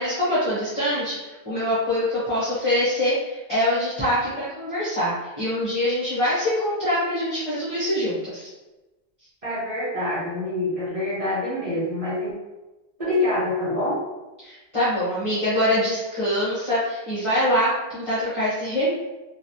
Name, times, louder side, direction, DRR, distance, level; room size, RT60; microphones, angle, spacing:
voice 1, 0.0-8.5 14.4-18.9, left 1 dB, 30° left, -10 dB, 1.0 m, -24 dB
voice 2, 9.4-12.3 13.0-14.0, left 1 dB, 35° right, -11 dB, 0.9 m, -26 dB
3.0 x 2.4 x 2.7 m, 1.1 s
omnidirectional pair, 1.1 m